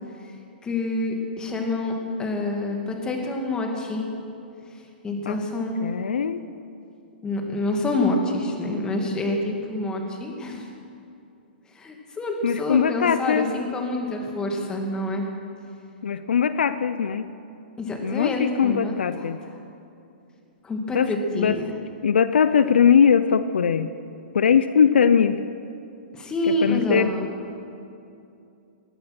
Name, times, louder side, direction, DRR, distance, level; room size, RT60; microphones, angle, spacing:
voice 1, 0.6-4.1 5.0-5.8 7.2-10.7 11.7-15.3 17.8-18.9 20.6-21.7 26.1-27.3, left 2 dB, 15° left, 1 dB, 2.4 m, -27 dB
voice 2, 5.8-6.4 12.4-13.5 16.0-17.3 18.0-19.4 20.9-21.6 22.0-23.9 24.3-25.4 26.4-27.1, left 7 dB, 80° left, 12 dB, 0.6 m, -20 dB
19.5 x 11.5 x 6.2 m, 2.6 s
hypercardioid pair, 135°, 6 cm